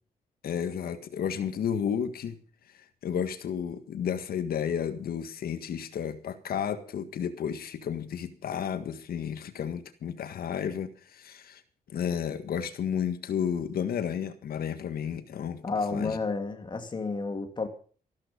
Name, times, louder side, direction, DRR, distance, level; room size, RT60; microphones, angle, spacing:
voice 1, 0.4-2.4 3.0-11.6 11.9-15.6 15.9-16.2, left 8 dB, 80° left, 1.7 m, -32 dB
voice 2, 15.6-17.7, left 4 dB, 30° left, 2.5 m, -31 dB
14.5 x 13.0 x 5.4 m
wide cardioid pair, 150°, 15 cm